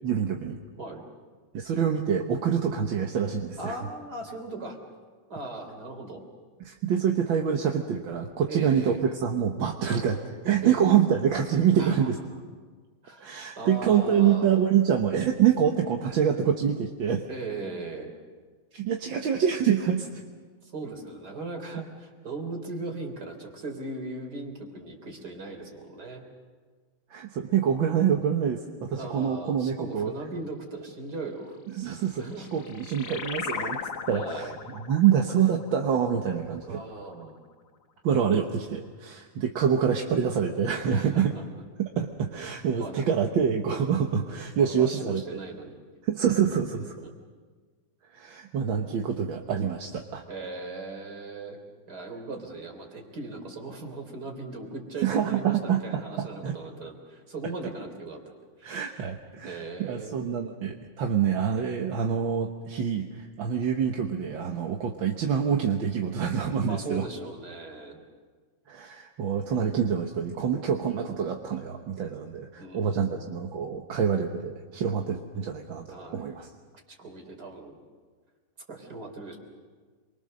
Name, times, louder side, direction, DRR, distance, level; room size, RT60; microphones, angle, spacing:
voice 1, 0.0-0.6 1.5-3.8 6.6-8.9 9.2-10.2 10.4-12.2 13.2-17.3 18.7-20.1 27.1-30.1 31.7-33.8 34.1-36.8 38.0-41.3 41.8-45.2 46.0-46.9 48.1-50.2 55.0-56.6 58.6-67.1 68.7-76.5, right 8 dB, 75° right, 3 dB, 2.0 m, -26 dB
voice 2, 3.6-4.8 5.3-6.2 8.5-9.0 9.9-10.1 10.6-10.8 11.8-12.1 13.0-14.6 16.0-16.2 17.3-18.1 19.8-19.9 20.7-26.2 29.0-31.6 32.2-32.6 34.0-34.5 36.7-37.4 40.9-41.3 42.8-43.0 44.6-45.7 47.0-47.1 50.3-51.6 51.9-58.2 58.6-58.9 59.4-60.6 66.5-68.1 72.6-73.2 75.9-76.3 76.9-77.7 78.7-79.4, right 3 dB, 55° right, 4 dB, 4.2 m, -38 dB
sound 1, 32.1-37.1, left 6 dB, 60° left, 1.6 m, -38 dB
28.0 x 23.5 x 6.6 m, 1.5 s
omnidirectional pair, 2.1 m